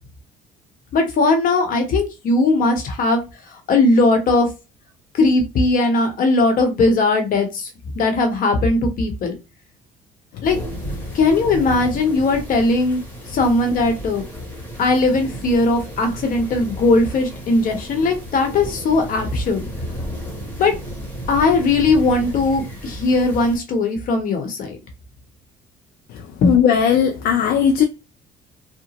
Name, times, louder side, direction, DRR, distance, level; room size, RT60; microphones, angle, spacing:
voice 1, 0.9-3.2 3.5-4.5 5.1-7.7 7.9-9.3 10.4-10.6 11.1-13.0 13.3-14.2 14.8-19.7 20.6-20.7 21.3-24.8 26.4-26.6, left 3 dB, 55° left, 0.9 m, -18 dB
sound 1, 10.4-23.6, equal, 10° left, 1.2 m, -33 dB
voice 2, 26.1-27.8, left 8 dB, 70° left, 0.4 m, -17 dB
2.8 x 2.0 x 2.9 m
cardioid pair, 110°, 17 cm